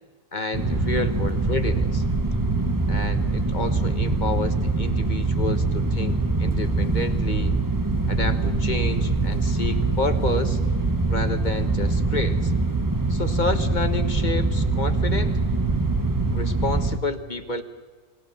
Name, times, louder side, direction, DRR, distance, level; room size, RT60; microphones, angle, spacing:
voice 1, 0.3-2.0 2.9-7.5 8.1-10.6 11.1-12.5 13.1-15.4 16.3-17.6, left 3 dB, 30° left, 8 dB, 1.4 m, -30 dB
sound 1, 0.5-17.0, right 3 dB, 15° right, 1.2 m, -23 dB
29.0 x 19.0 x 7.1 m, 1.4 s
omnidirectional pair, 1.6 m